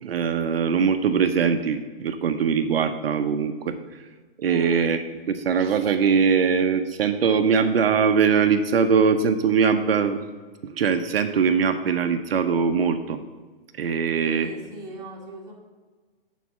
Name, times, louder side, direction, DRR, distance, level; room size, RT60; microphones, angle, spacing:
voice 1, 0.0-3.8 4.4-10.2 10.6-13.2 13.8-14.5, right 6 dB, 75° right, 7 dB, 0.7 m, -22 dB
voice 2, 4.4-4.8 14.2-15.5, right 1 dB, 10° right, -4 dB, 1.5 m, -40 dB
8.2 x 4.1 x 7.0 m, 1.4 s
hypercardioid pair, 155°, 30 cm